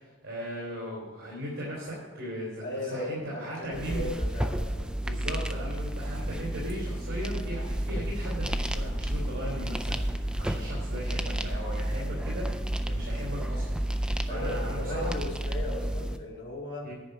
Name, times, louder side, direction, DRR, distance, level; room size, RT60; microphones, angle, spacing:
voice 1, 0.0-2.6 2.9-4.1 5.0-15.1 16.8-16.9, equal, 80° right, -7 dB, 3.6 m, -38 dB
voice 2, 2.6-4.9 14.3-16.9, left 1 dB, 65° left, -4 dB, 1.9 m, -37 dB
Crackling Knee, 3.7-16.2, right 1 dB, 5° right, 0.4 m, -31 dB
10.5 x 5.2 x 8.1 m, 1.3 s
head